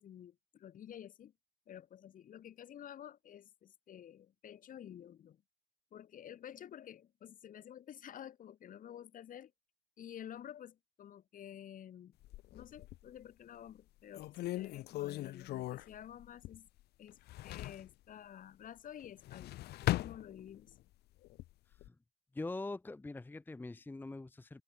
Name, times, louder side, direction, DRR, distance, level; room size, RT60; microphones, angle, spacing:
voice 1, 0.0-1.3 1.7-5.4 5.9-9.5 10.0-12.2 12.5-16.7 17.0-20.7, left 10 dB, 55° left, 3.2 m, -51 dB
sound 1, 12.2-13.2 13.7-13.8 14.1-16.8 17.1-17.9 19.0-20.8 21.2-21.9, left 16 dB, 75° left, 1.0 m, -39 dB
voice 2, 22.3-24.6, left 2 dB, 10° left, 0.9 m, -43 dB
open air
cardioid pair, 110°, 17 cm